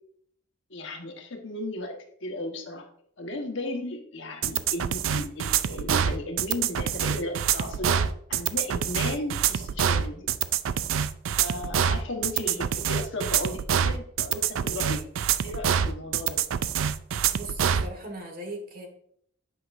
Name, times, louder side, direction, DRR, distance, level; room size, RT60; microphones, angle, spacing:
voice 1, 0.7-1.9 2.2-2.8 3.2-8.0 8.3-10.3 11.4-15.0 15.4-16.4, left 1 dB, 65° left, 3 dB, 1.2 m, -35 dB
sound 1, 4.4-17.9, right 8 dB, 90° right, 0.4 m, -26 dB
voice 2, 12.3-12.6 17.3-18.9, right 1 dB, 45° right, 4 dB, 1.5 m, -39 dB
8.6 x 5.9 x 2.5 m, 0.66 s
head